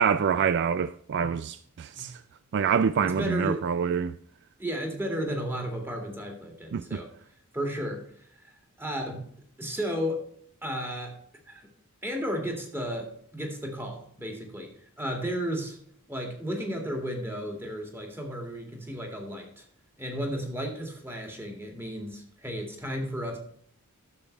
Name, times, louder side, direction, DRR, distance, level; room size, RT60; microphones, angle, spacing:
voice 1, 0.0-2.2 2.5-4.1 6.7-7.0, right 7 dB, 50° right, 0.3 m, -26 dB
voice 2, 3.0-3.6 4.6-7.1 7.5-8.5 8.8-9.3 9.6-10.3 10.6-11.1 11.5-11.7 12.0-15.8 16.1-19.6 20.0-23.4, equal, 10° right, 2.2 m, -33 dB
12.0 x 7.2 x 3.3 m
head